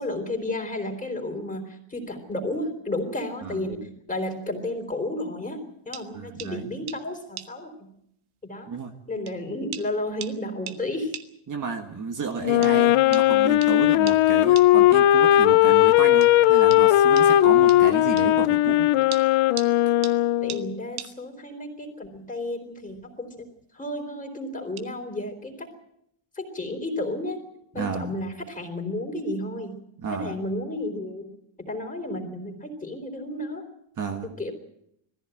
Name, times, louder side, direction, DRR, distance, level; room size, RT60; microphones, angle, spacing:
voice 1, 0.0-7.9 8.4-8.7 9.1-11.1 20.4-23.5 23.7-25.7 26.4-27.4 27.7-29.8 30.1-31.3 31.6-33.6 34.2-34.5, left 1 dB, 15° left, 4 dB, 4.0 m, -32 dB
sound 1, 5.9-6.1 6.4-6.5 6.9-7.0 7.4-7.5 8.5-8.6 9.3-9.4 9.7-9.9 10.2-10.4 10.7-10.8 11.1-11.3 12.6-12.7 13.1-13.3 13.6-13.7 14.1-14.2 14.5-14.7 16.2-16.3 16.7-16.8 17.2-17.3 17.7-17.8 18.2-18.3 19.1-19.7 20.0-20.2 20.5-20.6 21.0-21.1 22.8-23.0 23.3-23.6 24.8-24.9, right 11 dB, 75° right, 1.6 m, -38 dB
voice 2, 6.1-6.7 8.7-8.9 11.5-18.9 27.7-28.2 30.0-30.4 34.0-34.3, right 5 dB, 40° right, 4 dB, 1.7 m, -32 dB
Wind instrument woodwind instrument, 12.4-20.7, left 14 dB, 80° left, 0.8 m, -18 dB
20.5 x 15.0 x 9.1 m, 0.74 s
cardioid pair, 165°, 49 cm